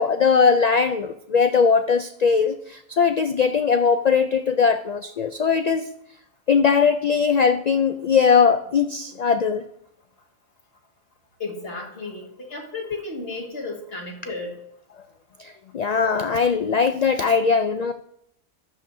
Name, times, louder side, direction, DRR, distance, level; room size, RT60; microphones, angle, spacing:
voice 1, 0.0-5.9 6.5-9.6 15.4-17.9, left 5 dB, 70° left, 9 dB, 0.3 m, -20 dB
voice 2, 11.4-14.5, left 3 dB, 55° left, 0 dB, 2.1 m, -33 dB
14.0 x 11.0 x 2.7 m, 0.77 s
omnidirectional pair, 1.2 m